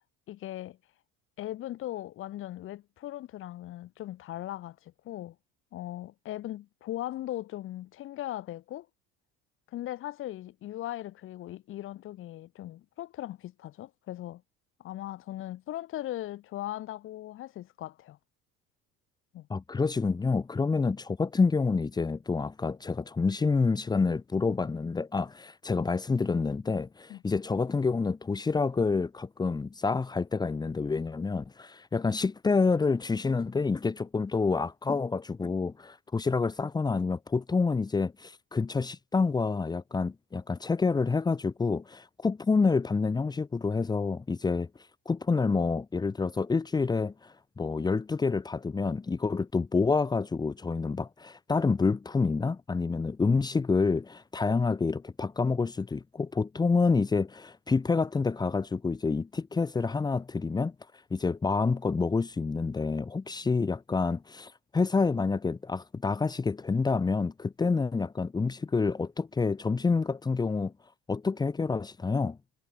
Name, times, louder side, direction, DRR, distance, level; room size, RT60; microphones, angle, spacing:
voice 1, 0.3-0.8 1.4-5.3 5.7-8.9 9.7-14.4 14.8-18.2 19.3-19.5 27.1-27.2, left 14 dB, 45° left, 3.4 m, -39 dB
voice 2, 19.5-44.7 45.1-60.7 61.1-70.7 71.1-72.4, left 4 dB, 15° left, 2.6 m, -28 dB
cardioid pair, 170°, 29 cm